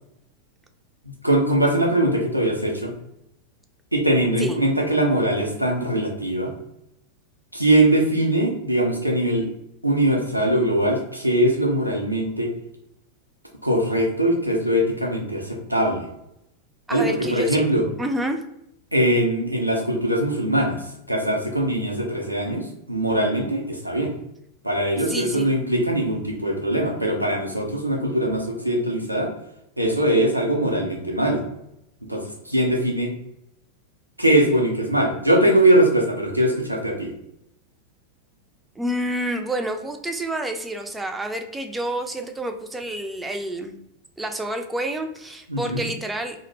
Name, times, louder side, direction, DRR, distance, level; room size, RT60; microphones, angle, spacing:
voice 1, 1.2-2.9 3.9-6.5 7.5-9.5 9.8-12.5 13.6-16.1 16.9-17.8 18.9-20.8 21.1-24.1 24.6-29.3 29.8-31.4 32.1-33.1 34.2-37.1 45.5-45.8, right 1 dB, 90° right, 0 dB, 0.5 m, -21 dB
voice 2, 16.9-17.6 18.0-18.4 25.1-25.5 38.8-43.7 44.2-46.5, right 1 dB, 10° right, 6 dB, 0.3 m, -28 dB
2.4 x 2.0 x 3.1 m, 0.81 s
figure-of-eight pair, 90°, 0 cm